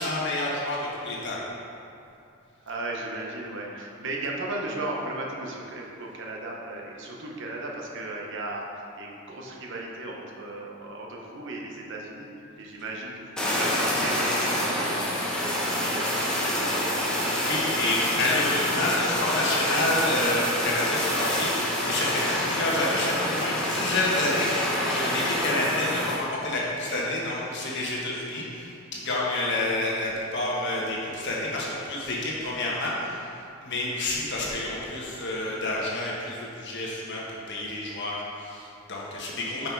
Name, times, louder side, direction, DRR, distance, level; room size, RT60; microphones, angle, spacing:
voice 1, 0.0-1.4 17.3-33.3 33.6-39.7, left 2 dB, 55° left, -4 dB, 1.4 m, -29 dB
voice 2, 2.6-12.3 12.6-16.8, right 2 dB, 60° right, -1 dB, 0.9 m, -36 dB
Fire, 13.4-26.2, left 1 dB, 5° left, 0.9 m, -27 dB
5.6 x 5.5 x 4.6 m, 2.6 s
head